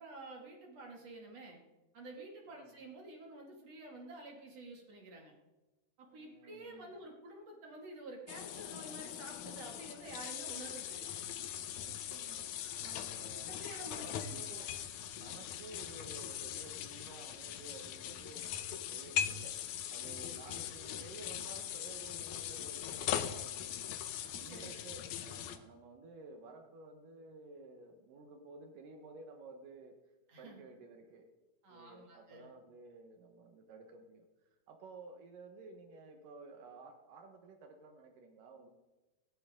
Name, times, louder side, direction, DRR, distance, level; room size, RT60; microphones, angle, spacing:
voice 1, 0.0-1.6 1.9-5.3 6.0-11.1 12.6-12.9 13.5-14.9 24.0-24.8 30.3-30.6 31.6-32.5, right 2 dB, 50° right, 0 dB, 3.3 m, -50 dB
voice 2, 6.1-6.9 11.8-13.5 13.9-14.7 15.2-19.5 19.9-24.0 24.3-30.0 30.4-31.3 31.7-34.3 34.7-38.7, right 3 dB, 75° right, 4 dB, 2.9 m, -54 dB
sound 1, 8.3-25.6, left 10 dB, 75° left, 2.1 m, -41 dB
18.5 x 16.5 x 3.7 m, 1.1 s
omnidirectional pair, 3.8 m